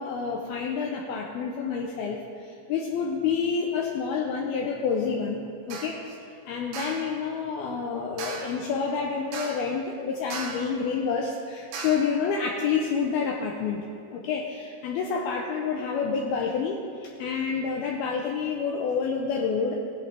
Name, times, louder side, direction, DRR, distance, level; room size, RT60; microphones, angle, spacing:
voice 1, 0.0-6.2 6.5-19.8, left 5 dB, 85° left, 0 dB, 2.2 m, -28 dB
sound 1, 5.7-6.0 6.7-7.1 8.2-8.6 9.3-9.8 10.3-10.8 11.7-12.2, right 4 dB, 70° right, 2.7 m, -37 dB
19.0 x 11.0 x 3.5 m, 2.8 s
omnidirectional pair, 5.5 m